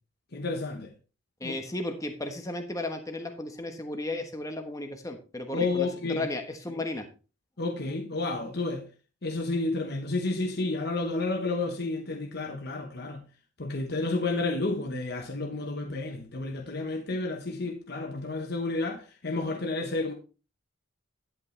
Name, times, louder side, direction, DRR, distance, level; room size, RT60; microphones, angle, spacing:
voice 1, 0.3-0.9 1.4-1.6 5.5-6.3 7.6-8.9 9.2-13.2 13.6-20.1, left 3 dB, 55° left, 1.1 m, -31 dB
voice 2, 1.4-7.1, left 2 dB, 15° left, 1.3 m, -34 dB
10.5 x 8.6 x 3.3 m
head